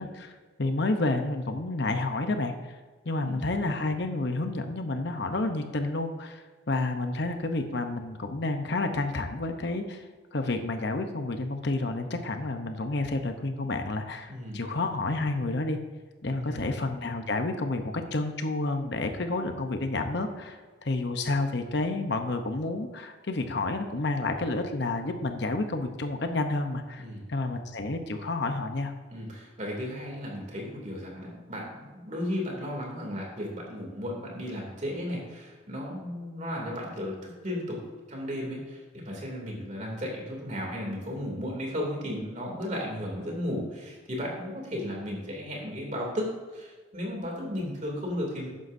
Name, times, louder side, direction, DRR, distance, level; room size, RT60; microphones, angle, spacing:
voice 1, 0.0-2.8 3.0-10.1 10.3-15.8 16.2-28.9, left 2 dB, 55° left, 6 dB, 0.8 m, -30 dB
voice 2, 14.3-14.6 16.4-16.7 27.0-27.2 29.1-37.8 38.1-46.3 46.5-48.5, equal, 35° right, -1 dB, 2.8 m, -35 dB
13.0 x 9.4 x 2.7 m, 1.4 s
head